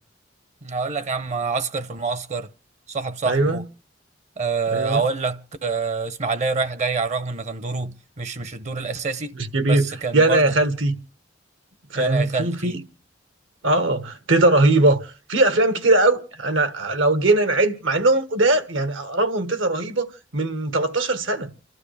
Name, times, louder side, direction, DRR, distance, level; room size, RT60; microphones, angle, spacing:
voice 1, 0.6-2.5 2.9-3.6 4.4-9.3 9.7-10.4 11.9-12.8, right 4 dB, 40° right, 0.7 m, -26 dB
voice 2, 3.3-3.6 4.7-5.0 9.4-9.8 10.1-10.9 11.9-12.8 13.6-20.1 20.3-21.5, right 2 dB, 80° right, 1.4 m, -20 dB
30.0 x 12.0 x 3.3 m
head